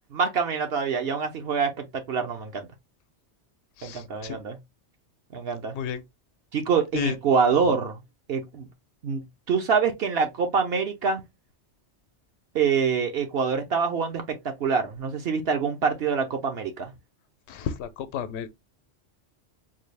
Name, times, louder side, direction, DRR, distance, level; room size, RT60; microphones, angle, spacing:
voice 1, 0.1-2.7 3.8-4.6 5.3-5.7 6.5-8.0 8.3-8.7 9.0-9.2 9.5-11.2 12.5-16.9, right 5 dB, 65° right, 0.9 m, -25 dB
voice 2, 3.8-4.4 5.7-6.0 6.9-7.2 7.6-7.8 17.5-18.5, left 8 dB, 75° left, 0.8 m, -32 dB
3.9 x 2.3 x 3.2 m
omnidirectional pair, 1.2 m